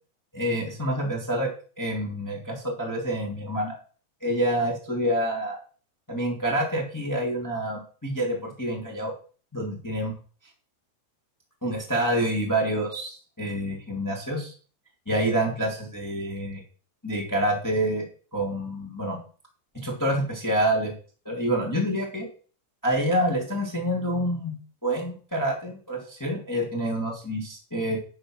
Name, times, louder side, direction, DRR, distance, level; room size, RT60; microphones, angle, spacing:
voice 1, 0.3-1.5 1.8-3.7 4.2-5.6 6.1-9.1 9.5-10.1 11.6-14.5 15.0-16.6 17.0-18.0 18.3-19.2 19.7-20.9 21.2-22.2 22.8-28.0, right 1 dB, 10° left, -1 dB, 1.1 m, -27 dB
11.0 x 4.8 x 6.3 m, 0.40 s
omnidirectional pair, 5.1 m